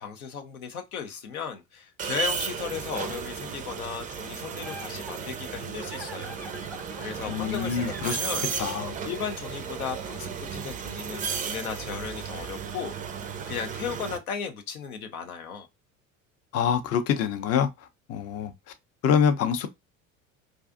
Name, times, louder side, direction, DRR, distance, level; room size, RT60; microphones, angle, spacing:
voice 1, 0.0-6.3 7.0-8.5 9.0-12.9 13.5-15.7, left 7 dB, 85° left, 0.6 m, -35 dB
sound 1, 2.0-14.2, right 7 dB, 20° right, 0.3 m, -34 dB
sound 2, 4.1-9.9, equal, 5° left, 0.7 m, -45 dB
voice 2, 7.3-8.2 8.6-9.0 16.5-18.5 19.0-19.7, left 7 dB, 35° left, 0.5 m, -25 dB
2.4 x 2.4 x 2.4 m
hypercardioid pair, 65°, 42 cm